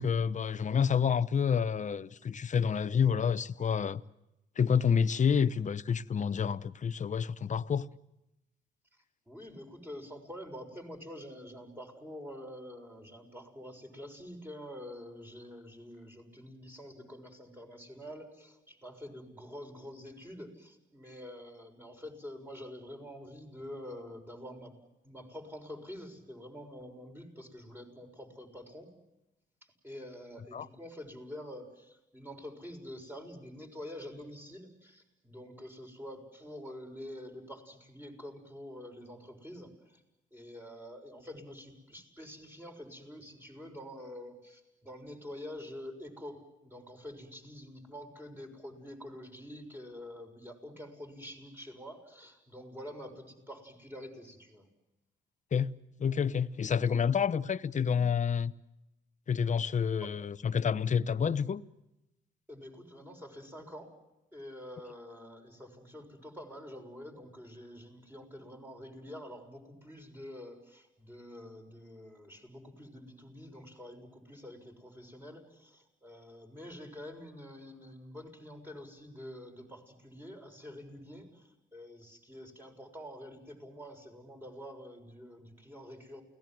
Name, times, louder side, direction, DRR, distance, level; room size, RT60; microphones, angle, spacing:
voice 1, 0.0-4.0 4.6-7.9 30.5-30.7 55.5-55.7 56.0-58.5 59.3-61.6, left 7 dB, 40° left, 0.9 m, -28 dB
voice 2, 9.3-24.8 25.0-28.9 29.8-40.0 40.3-54.7 60.0-60.1 62.5-63.9 64.3-86.2, left 1 dB, 10° right, 6.5 m, -47 dB
29.0 x 18.5 x 7.7 m
cardioid pair, 90°, 20 cm